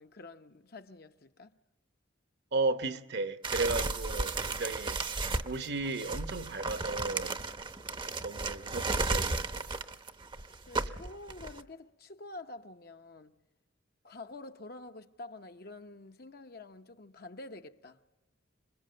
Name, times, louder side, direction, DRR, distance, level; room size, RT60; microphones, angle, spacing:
voice 1, 0.0-1.6 10.7-13.3 14.0-18.0, left 2 dB, 50° left, 0.9 m, -48 dB
voice 2, 2.5-5.0 5.4-7.4 8.1-9.7, right 3 dB, 55° right, 1.0 m, -34 dB
sound 1, 3.4-11.6, right 3 dB, 25° right, 0.8 m, -34 dB
27.5 x 22.0 x 7.8 m
head